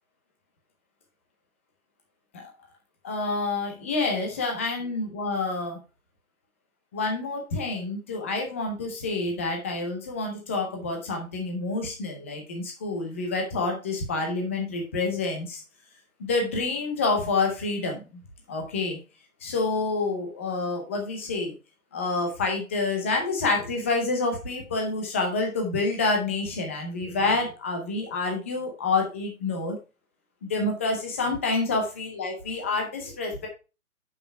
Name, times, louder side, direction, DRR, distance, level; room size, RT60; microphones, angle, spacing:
voice 1, 3.0-5.8 6.9-15.6 16.2-18.0 18.5-19.0 19.4-21.5 21.9-29.8 30.4-33.5, left 3 dB, 10° left, 2 dB, 0.6 m, -28 dB
6.8 x 5.7 x 4.5 m, 0.30 s
hypercardioid pair, 155°, 44 cm